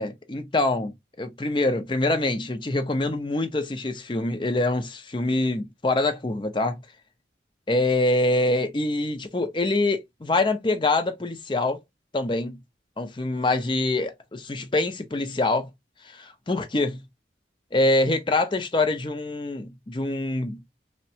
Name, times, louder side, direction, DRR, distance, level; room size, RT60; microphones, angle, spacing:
voice 1, 0.0-6.8 7.7-11.8 12.1-12.6 13.0-15.7 16.0-17.0 17.7-20.6, left 2 dB, 25° left, 0.5 m, -25 dB
3.5 x 2.1 x 2.7 m
head